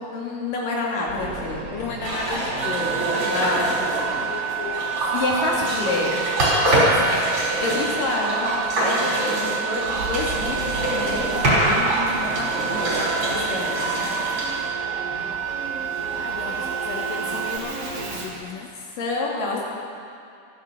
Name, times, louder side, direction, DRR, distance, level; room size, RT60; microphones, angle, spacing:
voice 1, 0.1-1.7 3.2-3.7 5.1-6.2 7.6-14.2 19.0-19.6, left 2 dB, 60° left, -3 dB, 3.7 m, -28 dB
Singing / Musical instrument, 1.1-18.4, right 2 dB, 55° right, 1.2 m, -34 dB
voice 2, 1.7-5.0 5.6-7.4 16.2-18.7 19.5-19.6, left 6 dB, 80° left, 3 dB, 2.0 m, -35 dB
sound 1, 2.0-15.5, right 1 dB, 35° right, 5.1 m, -25 dB
sound 2, 2.6-17.6, right 12 dB, 85° right, 2.1 m, -30 dB
14.0 x 13.0 x 7.2 m, 2.4 s
omnidirectional pair, 4.7 m